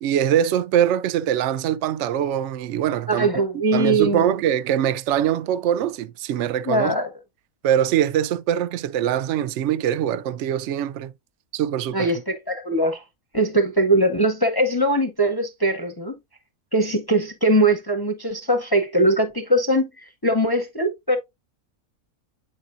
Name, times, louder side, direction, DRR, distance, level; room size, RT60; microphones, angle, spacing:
voice 1, 0.0-3.3 3.7-7.0 7.6-11.1 11.5-12.1, right 10 dB, 65° right, 0.8 m, -23 dB
voice 2, 3.1-4.3 6.7-7.1 11.9-13.0 13.3-16.2 16.7-19.9 20.2-21.2, right 1 dB, 20° left, 0.6 m, -21 dB
8.7 x 4.6 x 2.5 m
omnidirectional pair, 1.5 m